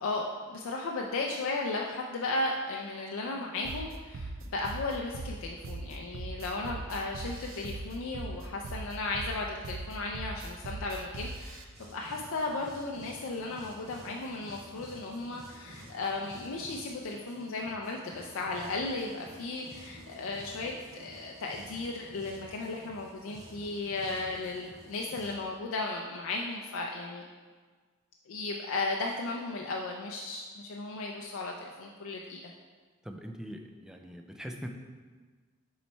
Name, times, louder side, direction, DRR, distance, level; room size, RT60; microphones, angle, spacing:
voice 1, 0.0-27.2 28.3-32.5, left 3 dB, 70° left, 0 dB, 0.4 m, -35 dB
sound 1, 3.6-11.6, right 2 dB, 65° right, 0.5 m, -40 dB
sound 2, 11.7-25.3, right 1 dB, 85° right, 1.4 m, -51 dB
voice 2, 33.0-34.7, equal, 5° right, 3 dB, 0.3 m, -42 dB
7.0 x 3.2 x 4.4 m, 1.5 s
head